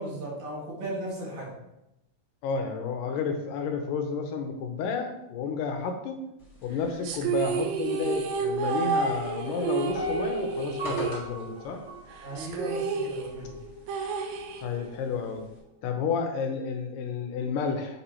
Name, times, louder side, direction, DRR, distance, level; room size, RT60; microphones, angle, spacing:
voice 1, 0.0-1.5 12.2-13.5, right 1 dB, 60° right, -4 dB, 3.1 m, -36 dB
voice 2, 2.4-6.2 6.6-11.8 14.6-15.5 15.8-18.0, left 5 dB, 85° left, 5 dB, 2.4 m, -31 dB
sound 1, 6.4-15.6, left 1 dB, 30° left, 1.4 m, -46 dB
sound 2, 7.0-11.7 12.0-12.1 12.4-15.0, right 5 dB, 85° right, 2.3 m, -30 dB
Piano, 9.9-13.0 13.5-13.6, left 1 dB, 35° right, 1.6 m, -39 dB
6.8 x 5.4 x 2.9 m, 0.88 s
omnidirectional pair, 3.8 m